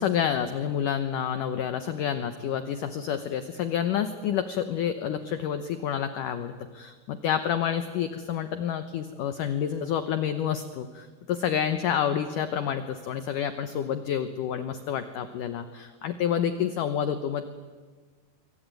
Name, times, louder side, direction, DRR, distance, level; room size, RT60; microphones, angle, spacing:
voice 1, 0.0-17.4, left 9 dB, 70° left, 10 dB, 2.1 m, -29 dB
26.0 x 24.0 x 9.1 m, 1.4 s
omnidirectional pair, 4.8 m